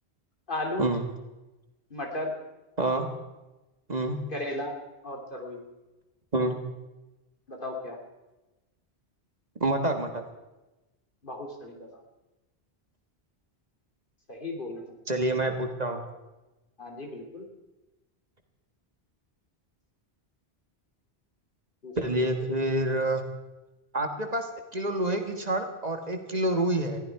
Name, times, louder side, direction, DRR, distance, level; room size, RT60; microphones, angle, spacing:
voice 1, 0.5-0.9 1.9-2.4 4.3-4.7 5.0-5.6 7.5-8.0 11.2-11.9 14.3-15.0 16.8-17.5 21.8-21.9, left 2 dB, 50° left, 2 dB, 2.8 m, -35 dB
voice 2, 2.8-3.1 3.9-4.2 6.3-6.6 9.6-10.2 15.1-16.0 22.0-23.2 23.9-27.0, right 1 dB, 40° right, 5 dB, 1.6 m, -27 dB
20.5 x 15.0 x 4.7 m, 1.1 s
omnidirectional pair, 1.1 m